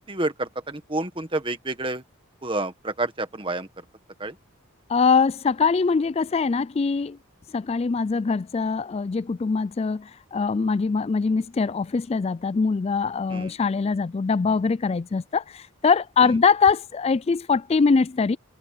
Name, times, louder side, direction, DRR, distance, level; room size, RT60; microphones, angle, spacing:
voice 1, 0.1-2.0 2.4-3.8 4.2-4.4 13.3-13.5 16.2-16.4, right 2 dB, 25° right, 1.6 m, -29 dB
voice 2, 4.9-7.2 7.5-18.4, left 5 dB, 30° left, 0.3 m, -23 dB
head